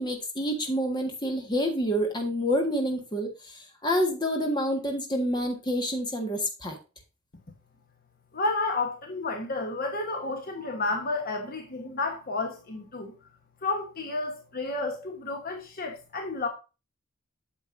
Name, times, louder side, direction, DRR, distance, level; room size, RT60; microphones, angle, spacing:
voice 1, 0.0-6.8, equal, 20° left, 1.7 m, -28 dB
voice 2, 8.3-13.1 13.6-16.5, left 3 dB, 45° left, 1.2 m, -31 dB
8.5 x 7.2 x 2.7 m
head